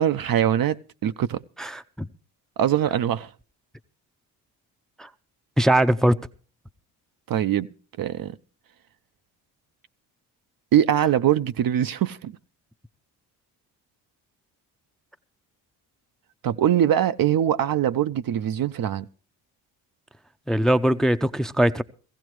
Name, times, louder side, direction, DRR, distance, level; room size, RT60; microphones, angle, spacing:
voice 1, 0.0-1.4 2.6-3.3 7.3-7.7 8.0-8.3 10.7-12.3 16.4-19.1, right 10 dB, 50° right, 0.6 m, -22 dB
voice 2, 1.6-2.1 5.0-5.1 5.6-6.2 20.5-21.8, right 1 dB, ahead, 0.6 m, -21 dB
17.0 x 15.5 x 3.1 m
supercardioid pair, 55°, 47 cm